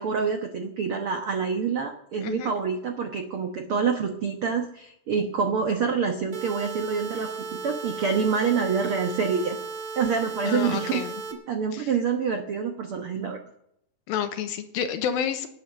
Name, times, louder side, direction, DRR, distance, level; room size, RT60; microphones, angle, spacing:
voice 1, 0.0-9.6 9.9-11.0 11.5-13.4, right 6 dB, 75° right, 5 dB, 1.2 m, -27 dB
voice 2, 2.2-2.5 10.4-11.1 11.7-11.9 14.1-15.5, left 8 dB, 75° left, 8 dB, 2.8 m, -29 dB
sound 1, 6.3-11.3, right 5 dB, 45° right, 2.3 m, -36 dB
18.0 x 9.2 x 6.6 m, 0.75 s
omnidirectional pair, 4.3 m